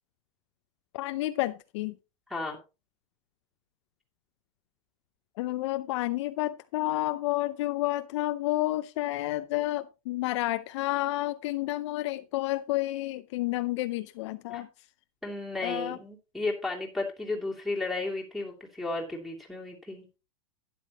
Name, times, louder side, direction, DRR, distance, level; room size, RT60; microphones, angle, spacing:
voice 1, 0.9-1.9 5.4-14.7 15.6-16.0, left 17 dB, 55° left, 0.6 m, -30 dB
voice 2, 15.2-20.1, left 2 dB, ahead, 2.7 m, -33 dB
11.5 x 10.0 x 2.9 m
supercardioid pair, 145°, 18 cm